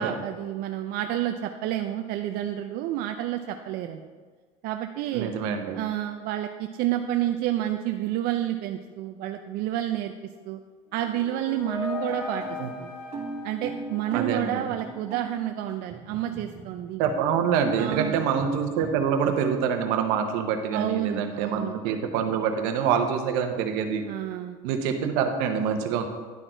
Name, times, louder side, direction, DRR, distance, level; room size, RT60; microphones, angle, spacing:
voice 1, 0.0-4.0 4.6-5.3 5.7-10.1 10.5-10.6 10.9-12.4 12.8-12.9 13.4-17.0 17.8-18.3 20.7-21.8 24.1-24.6, right 12 dB, 65° right, 6 dB, 0.4 m, -29 dB
voice 2, 5.1-5.8 12.6-12.7 14.1-14.7 17.0-24.0 24.6-26.1, right 7 dB, 85° right, 6 dB, 0.9 m, -26 dB
sound 1, 10.9-14.8, left 5 dB, 35° left, 1.6 m, -38 dB
sound 2, 11.5-19.5, right 4 dB, 40° right, 2.0 m, -41 dB
10.5 x 4.3 x 4.4 m, 1.5 s
cardioid pair, 125°, 17 cm